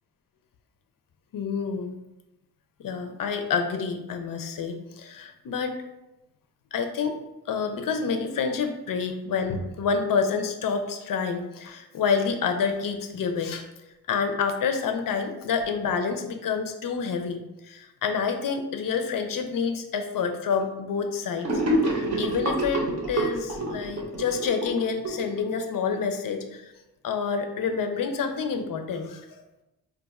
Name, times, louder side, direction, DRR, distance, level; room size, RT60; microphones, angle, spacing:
voice 1, 1.3-2.0 2.8-5.8 6.7-7.2 7.5-13.7 14.1-21.5 21.9-26.7 27.0-29.3, left 5 dB, 65° left, 6 dB, 0.5 m, -28 dB
Gurgling / Sink (filling or washing), 21.4-25.9, right 1 dB, 45° right, 0.7 m, -27 dB
2.4 x 2.3 x 4.0 m, 0.95 s
wide cardioid pair, 135°, 37 cm